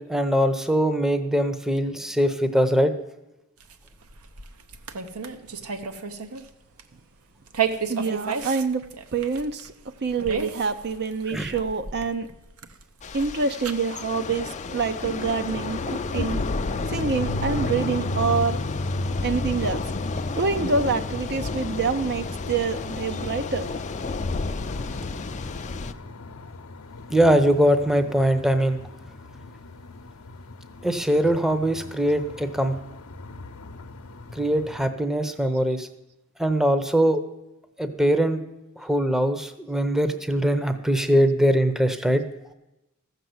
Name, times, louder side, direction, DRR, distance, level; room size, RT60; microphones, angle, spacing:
voice 1, 0.0-2.9 11.3-11.5 27.1-28.8 30.8-32.8 34.3-35.9 36.4-37.2 37.8-38.4 38.8-42.2, equal, ahead, 9 dB, 0.7 m, -22 dB
sound 1, 3.6-6.5 6.8-7.0 7.5-13.7, right 6 dB, 75° right, 0.9 m, -33 dB
voice 2, 7.9-8.8 9.1-9.7 10.0-12.3 13.1-16.4 16.9-18.6 19.2-19.8 20.4-23.7, right 4 dB, 50° right, 9 dB, 0.6 m, -26 dB
Thunder / Rain, 13.0-25.9, left 3 dB, 35° left, 0.5 m, -31 dB
sound 2, 15.5-34.9, left 1 dB, 70° left, 0.8 m, -36 dB
14.5 x 6.8 x 7.8 m, 0.96 s
head